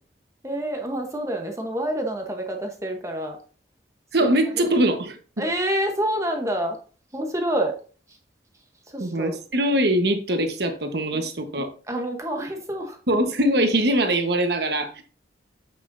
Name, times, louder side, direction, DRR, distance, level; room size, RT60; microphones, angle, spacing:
voice 1, 0.4-3.4 4.2-4.7 5.4-6.8 7.1-7.8 8.1-8.2 8.9-9.4 11.1-11.3 11.9-13.0, right 1 dB, 15° right, 1.0 m, -28 dB
voice 2, 4.1-5.2 9.0-11.7 13.1-15.0, right 1 dB, 60° right, 1.2 m, -22 dB
7.5 x 6.7 x 2.6 m
head